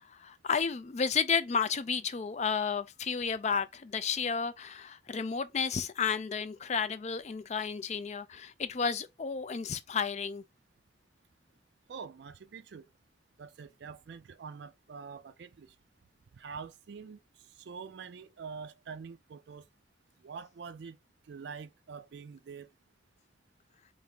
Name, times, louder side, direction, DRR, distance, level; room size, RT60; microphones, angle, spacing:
voice 1, 0.0-10.4, left 6 dB, 40° left, 0.4 m, -32 dB
voice 2, 11.9-12.9 13.4-15.8 16.3-19.7 20.2-21.0 21.3-22.7, right 5 dB, 65° right, 0.4 m, -45 dB
3.4 x 2.7 x 3.8 m
head